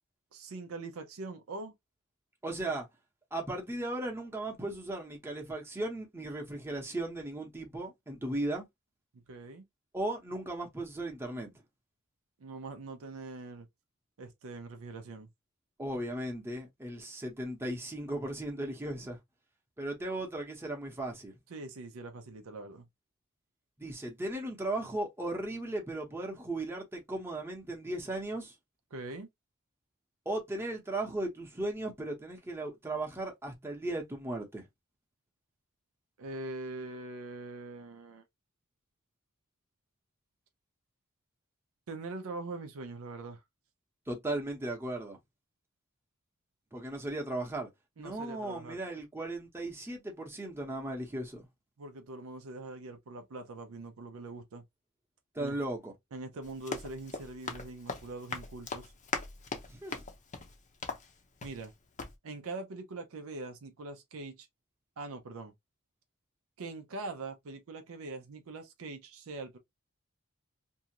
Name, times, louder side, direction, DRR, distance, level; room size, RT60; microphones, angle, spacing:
voice 1, 0.3-1.7 9.1-9.7 12.4-13.7 14.2-15.3 21.5-22.9 28.9-29.3 36.2-38.2 41.9-43.4 48.0-48.8 51.8-54.6 55.4-55.6 56.1-58.9 61.4-61.7 62.2-64.5 65.0-65.5 66.6-69.6, right 3 dB, 65° right, 0.5 m, -43 dB
voice 2, 2.4-2.9 3.3-8.7 9.9-11.6 15.8-19.2 19.8-21.3 23.8-28.5 30.2-34.7 44.1-45.2 46.7-47.7 48.0-51.5 55.3-55.9 59.7-60.0, right 1 dB, 10° right, 0.8 m, -36 dB
Run, 56.4-61.7 62.0-62.1, left 4 dB, 35° left, 0.6 m, -40 dB
2.7 x 2.4 x 2.8 m
head